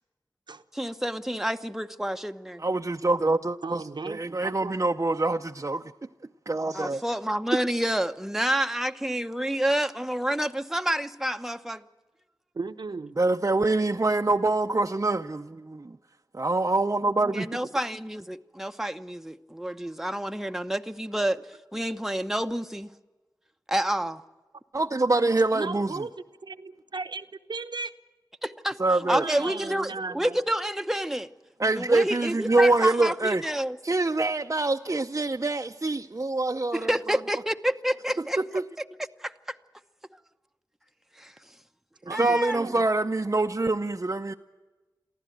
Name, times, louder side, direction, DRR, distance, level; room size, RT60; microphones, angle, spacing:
voice 1, 0.7-2.6 6.7-11.8 17.3-21.4 21.7-22.9 23.7-24.2 28.4-31.3 31.7-33.8 36.7-38.4 39.2-39.6 41.2-41.3 42.1-42.6, right 1 dB, 5° right, 7 dB, 0.9 m, -29 dB
voice 2, 2.6-5.8 6.5-7.0 13.2-16.0 16.3-17.5 24.7-25.9 28.8-29.2 31.6-33.4 33.8-37.2 38.4-38.6 42.1-44.3, right 2 dB, 45° right, 3 dB, 0.6 m, -25 dB
voice 3, 3.6-4.8 12.5-13.2 17.5-17.7 25.5-26.1 26.4-27.9 29.2-30.4 42.1-42.8, right 4 dB, 85° right, 7 dB, 0.9 m, -36 dB
23.5 x 15.0 x 9.2 m, 1.2 s
wide cardioid pair, 50°, 7 cm